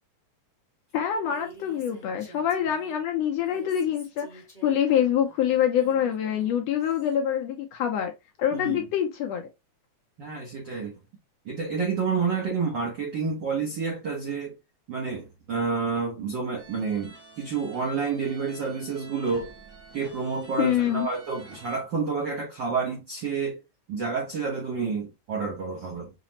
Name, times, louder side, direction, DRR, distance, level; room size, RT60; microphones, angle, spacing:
voice 1, 0.9-8.1 8.4-9.5 20.6-21.1, left 9 dB, 80° left, 1.6 m, -25 dB
Female speech woman speaking, 1.2-3.0 3.4-7.1, right 3 dB, 25° left, 0.9 m, -51 dB
voice 2, 8.5-8.8 10.2-10.9 11.4-14.6 14.9-19.5 19.9-23.6 23.9-26.1, right 5 dB, 75° right, 1.0 m, -29 dB
sound 1, 16.6-21.8, right 2 dB, 55° right, 0.8 m, -48 dB
5.7 x 2.0 x 2.7 m
omnidirectional pair, 3.4 m